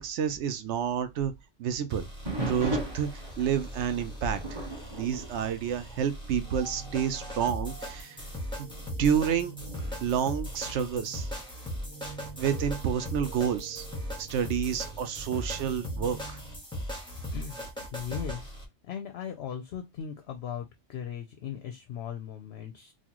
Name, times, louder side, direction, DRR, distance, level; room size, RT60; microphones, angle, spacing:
voice 1, 0.0-1.3 1.6-2.1 2.4-4.4 4.9-8.2 8.6-8.7 9.0-9.5 10.0-11.3 12.4-13.9 14.2-16.4, right 8 dB, 70° right, 0.8 m, -29 dB
sound 1, 1.9-18.7, equal, 5° left, 1.2 m, -39 dB
sound 2, 2.2-6.4 6.7-7.1 7.7-7.8 8.5-11.2 13.1-13.6, right 2 dB, 20° right, 1.7 m, -38 dB
sound 3, 6.4-16.6, right 5 dB, 85° right, 1.2 m, -48 dB
voice 2, 17.9-18.6 18.9-22.9, left 8 dB, 65° left, 0.7 m, -38 dB
4.1 x 2.3 x 2.9 m
omnidirectional pair, 1.3 m